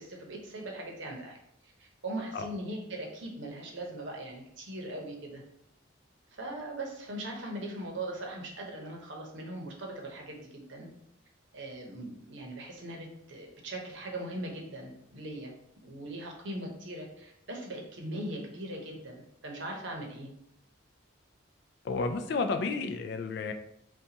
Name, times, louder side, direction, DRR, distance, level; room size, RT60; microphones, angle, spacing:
voice 1, 0.0-1.4 1.6-5.4 6.3-10.9 11.5-15.5 15.8-20.3, right 1 dB, 65° right, 0 dB, 0.8 m, -40 dB
voice 2, 21.8-23.5, left 4 dB, 55° left, 7 dB, 0.3 m, -31 dB
4.1 x 2.2 x 2.8 m, 0.76 s
head